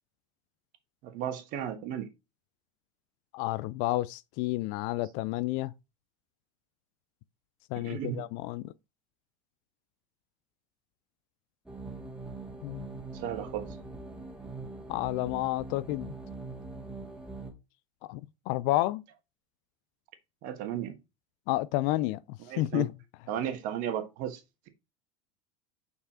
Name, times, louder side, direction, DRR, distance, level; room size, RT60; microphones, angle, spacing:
voice 1, 1.0-2.1 7.7-8.2 13.1-13.8 20.4-21.0 22.5-22.9 23.3-24.4, right 10 dB, 50° right, 1.4 m, -34 dB
voice 2, 3.3-5.7 7.7-8.7 12.6-12.9 14.9-16.1 18.1-18.2 18.5-19.0 21.5-22.2 22.6-22.9, left 17 dB, 50° left, 0.4 m, -30 dB
sound 1, 11.7-17.5, right 3 dB, 5° right, 2.1 m, -42 dB
5.5 x 4.7 x 4.3 m
hypercardioid pair, 80°, 17 cm